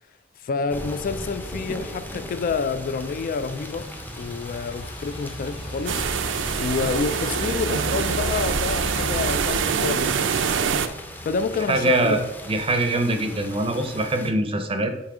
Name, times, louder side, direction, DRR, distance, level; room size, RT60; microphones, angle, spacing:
voice 1, 0.4-3.9 4.1-6.1 6.6-10.3 11.2-12.3, left 4 dB, 50° left, 0.3 m, -28 dB
sound 1, 0.7-14.3, left 1 dB, 10° left, 0.6 m, -39 dB
sound 2, 1.8-13.5, equal, 25° left, 1.3 m, -37 dB
sound 3, 5.9-10.9, right 6 dB, 75° right, 0.5 m, -25 dB
voice 2, 11.7-12.2 12.5-15.1, right 2 dB, 30° right, 0.6 m, -23 dB
5.9 x 4.2 x 4.8 m
head